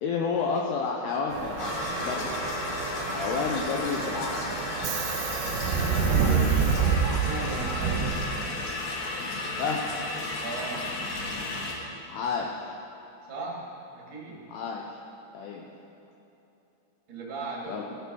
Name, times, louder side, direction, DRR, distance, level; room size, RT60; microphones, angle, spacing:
voice 1, 0.0-2.4 3.0-4.5 9.6-9.8 12.1-12.7 14.5-14.8 15.3-15.7 17.7-17.8, left 5 dB, 85° left, -1 dB, 2.4 m, -30 dB
Subway metro underground, 1.3-8.7, right 6 dB, 80° right, 2.8 m, -28 dB
sound 1, 1.6-11.7, left 2 dB, 65° left, 2.8 m, -33 dB
voice 2, 5.8-8.1 10.4-10.9 13.3-13.6 13.9-14.5 17.1-17.8, right 3 dB, 40° right, -4 dB, 1.9 m, -37 dB
17.5 x 6.8 x 6.2 m, 2.9 s
omnidirectional pair, 5.6 m